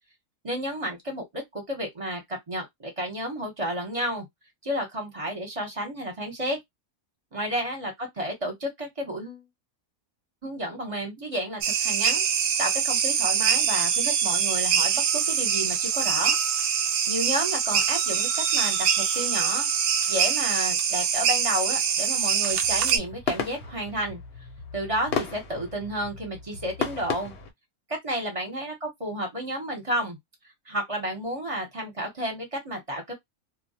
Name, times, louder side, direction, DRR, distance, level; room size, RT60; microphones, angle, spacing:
voice 1, 0.4-2.2 2.5-4.3 4.6-6.6 7.3-9.4 10.4-12.2 12.6-16.3 16.7-16.8 17.1-19.7 20.1-24.2 24.7-27.3 28.0-30.2 30.7-33.1, equal, 25° right, 0.9 m, -31 dB
sound 1, 11.6-23.0, right 7 dB, 70° right, 0.8 m, -24 dB
sound 2, 22.5-27.5, left 5 dB, 60° left, 0.8 m, -34 dB
2.3 x 2.2 x 2.7 m
omnidirectional pair, 1.5 m